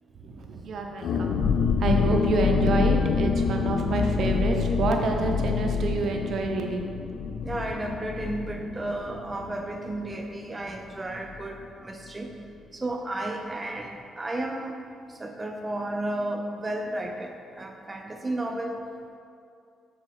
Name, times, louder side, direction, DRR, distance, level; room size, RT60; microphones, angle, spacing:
voice 1, 0.2-6.9, right 3 dB, 65° right, 2 dB, 0.9 m, -28 dB
sound 1, 1.0-10.4 10.7-10.8 11.1-11.4, left 5 dB, 65° left, 0.4 m, -27 dB
voice 2, 7.4-12.3 12.7-14.7 15.2-18.8, right 1 dB, 20° right, 2 dB, 0.6 m, -33 dB
7.0 x 4.1 x 6.3 m, 2.5 s
cardioid pair, 90°, 0 cm